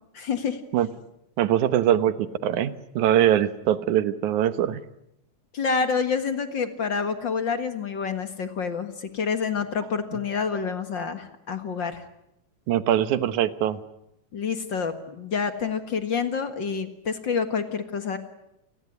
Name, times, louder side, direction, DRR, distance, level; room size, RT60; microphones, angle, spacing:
voice 1, 0.1-0.6 5.5-12.0 14.3-18.2, left 5 dB, 45° left, 9 dB, 2.1 m, -28 dB
voice 2, 1.4-4.8 12.7-13.8, right 11 dB, 90° right, 13 dB, 2.6 m, -22 dB
28.5 x 19.5 x 9.4 m, 0.82 s
omnidirectional pair, 3.3 m